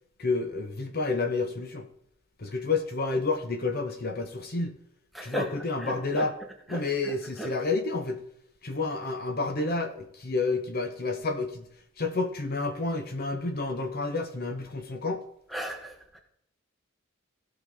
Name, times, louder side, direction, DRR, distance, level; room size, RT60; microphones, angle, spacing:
voice 1, 0.2-1.9 2.4-4.8 5.2-6.3 6.7-8.2 8.6-11.7 12.0-15.2, left 3 dB, 50° left, 6 dB, 1.0 m, -30 dB
voice 2, 5.1-6.3 6.7-7.5 15.5-16.2, right 1 dB, ahead, 2 dB, 1.3 m, -37 dB
16.0 x 5.9 x 3.6 m, 0.73 s
head